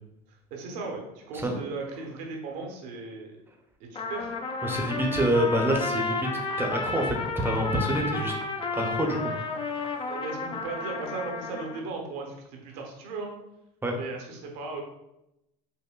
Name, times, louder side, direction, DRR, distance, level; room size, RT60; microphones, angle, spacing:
voice 1, 0.5-3.4 3.8-4.3 10.1-13.3 13.9-14.8, right 4 dB, 75° right, 1 dB, 0.9 m, -37 dB
Trumpet, 4.0-11.8, left 4 dB, 25° left, 0.4 m, -32 dB
voice 2, 4.6-6.3 6.6-7.2 7.4-8.3 8.7-10.1 13.8-13.9, right 1 dB, 10° right, 2 dB, 0.7 m, -27 dB
5.4 x 2.1 x 2.2 m, 0.88 s
hypercardioid pair, 85°, 21 cm